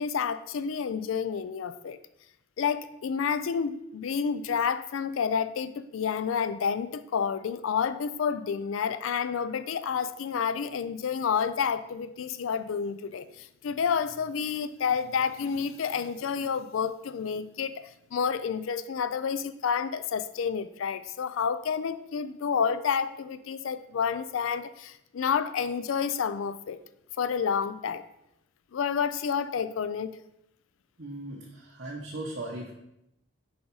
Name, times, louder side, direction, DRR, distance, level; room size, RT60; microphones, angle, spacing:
voice 1, 0.0-2.0 2.6-26.8 27.2-28.0 28.7-30.2, left 6 dB, 80° left, 13 dB, 0.4 m, -29 dB
voice 2, 31.0-31.4 31.8-32.7, right 2 dB, 55° right, -4 dB, 1.0 m, -37 dB
6.2 x 5.0 x 4.7 m, 0.83 s
head